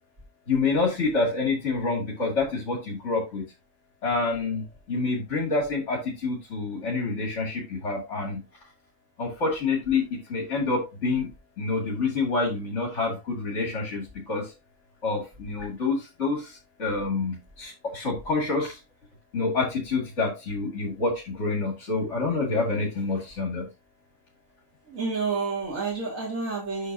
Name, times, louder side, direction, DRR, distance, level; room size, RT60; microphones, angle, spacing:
voice 1, 0.5-3.4 4.0-8.4 9.2-11.3 11.6-14.5 15.0-18.8 19.3-23.6, left 3 dB, 60° left, -3 dB, 2.6 m, -27 dB
voice 2, 24.9-26.9, right 4 dB, 90° right, -3 dB, 2.8 m, -29 dB
8.3 x 6.1 x 2.7 m, 0.26 s
omnidirectional pair, 1.4 m